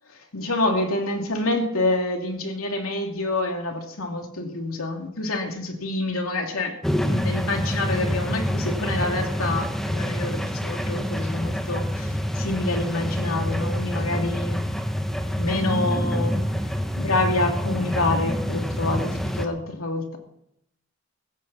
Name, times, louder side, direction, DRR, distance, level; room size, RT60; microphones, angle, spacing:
voice 1, 0.3-6.7 7.1-14.6 15.3-16.4 17.0-20.2, left 2 dB, 85° left, 3 dB, 2.7 m, -27 dB
sound 1, 6.8-19.5, equal, ahead, 0.9 m, -27 dB
15.5 x 15.0 x 4.2 m, 0.77 s
head